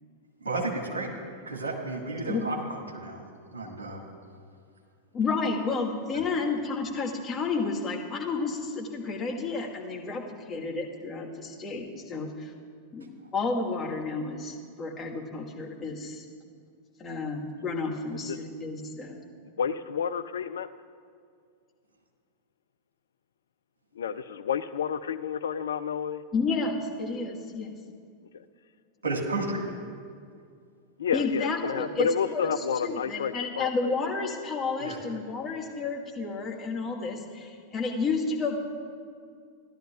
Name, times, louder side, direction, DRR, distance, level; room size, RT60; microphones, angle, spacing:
voice 1, 0.4-1.1 1.5-3.2 3.5-4.0 6.1-6.2 29.0-29.7 34.8-35.0, right 2 dB, 70° right, 0 dB, 1.7 m, -32 dB
voice 2, 5.1-12.5 12.9-13.1 13.3-16.2 17.0-19.2 26.3-27.7 31.1-38.6, left 4 dB, 20° left, -2 dB, 1.5 m, -31 dB
voice 3, 19.6-20.7 24.0-26.2 31.0-33.9, left 7 dB, 65° left, 13 dB, 0.3 m, -30 dB
16.5 x 11.5 x 2.4 m, 2.2 s
figure-of-eight pair, 90°, 0 cm